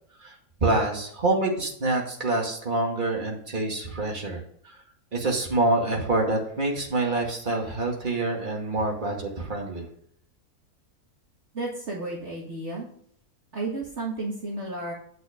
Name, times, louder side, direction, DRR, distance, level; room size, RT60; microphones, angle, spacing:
voice 1, 0.2-4.8 5.1-9.9, right 2 dB, 30° right, 0 dB, 2.3 m, -26 dB
voice 2, 11.5-12.9 13.5-14.9, right 2 dB, 50° right, -3 dB, 2.1 m, -32 dB
9.4 x 6.0 x 5.2 m, 0.63 s
omnidirectional pair, 1.6 m